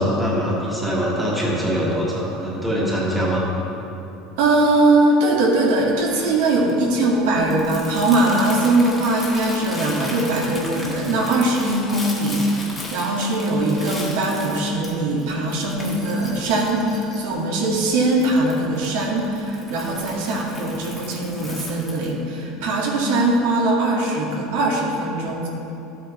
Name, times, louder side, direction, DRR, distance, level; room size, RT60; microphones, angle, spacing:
voice 1, 0.0-3.5, equal, 5° right, -6 dB, 1.5 m, -23 dB
voice 2, 4.4-25.5, right 2 dB, 80° right, -2 dB, 1.8 m, -21 dB
Crumpling crinkling, 5.7-22.1, left 2 dB, 10° left, 1.4 m, -37 dB
13.0 x 8.6 x 3.1 m, 2.9 s
cardioid pair, 170°, 0 cm